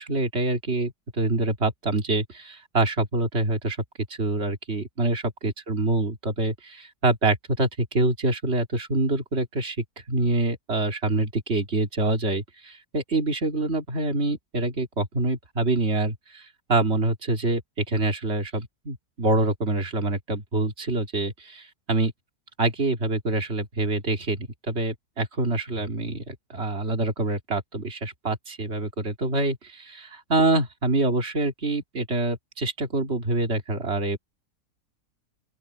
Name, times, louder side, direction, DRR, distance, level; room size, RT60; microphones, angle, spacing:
voice 1, 0.0-3.8 4.2-22.1 22.6-34.2, right 2 dB, 40° right, 2.8 m, -26 dB
open air
omnidirectional pair, 1.7 m